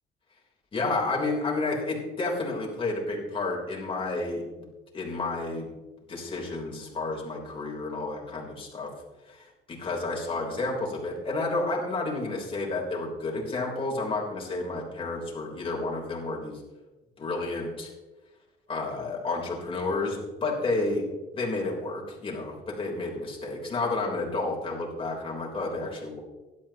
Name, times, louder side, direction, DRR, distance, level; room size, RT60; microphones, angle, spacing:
voice 1, 0.7-4.4 4.9-5.7 6.1-8.9 9.3-16.6 17.2-17.9 18.7-21.0 21.3-26.2, left 3 dB, 30° left, -2 dB, 3.6 m, -31 dB
16.5 x 11.5 x 2.9 m, 1.1 s
cardioid pair, 110°, 17 cm